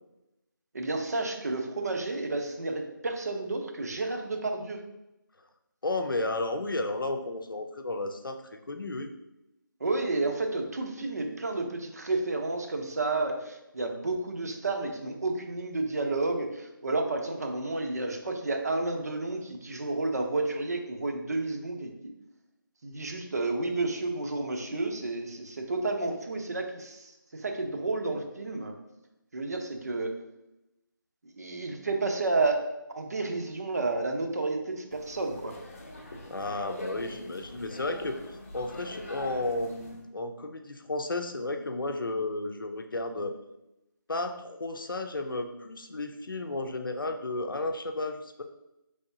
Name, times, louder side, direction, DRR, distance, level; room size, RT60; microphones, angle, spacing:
voice 1, 0.7-4.8 9.8-22.1 22.8-28.7 29.3-30.1 31.4-32.6 32.9-35.5, right 3 dB, 45° right, 4 dB, 0.8 m, -31 dB
voice 2, 5.8-9.1 36.3-38.2 38.5-43.3 44.1-48.4, left 2 dB, 75° left, 6 dB, 0.6 m, -33 dB
sound 1, 34.9-40.0, left 1 dB, 40° left, 0.7 m, -43 dB
5.3 x 3.5 x 2.7 m, 0.91 s
figure-of-eight pair, 165°, 12 cm